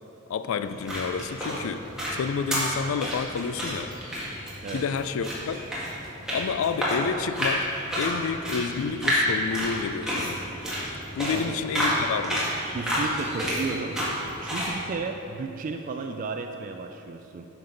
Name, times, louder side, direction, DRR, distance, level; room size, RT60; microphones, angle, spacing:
voice 1, 0.3-1.9 2.1-3.9 4.7-5.6 6.3-10.4 11.2-12.5, left 6 dB, 70° left, 11 dB, 0.3 m, -29 dB
sound 1, 0.6-14.7, equal, 5° right, 1.7 m, -30 dB
voice 2, 12.7-14.0 14.4-17.5, right 4 dB, 40° right, 5 dB, 0.3 m, -33 dB
8.7 x 6.0 x 3.8 m, 3.0 s
head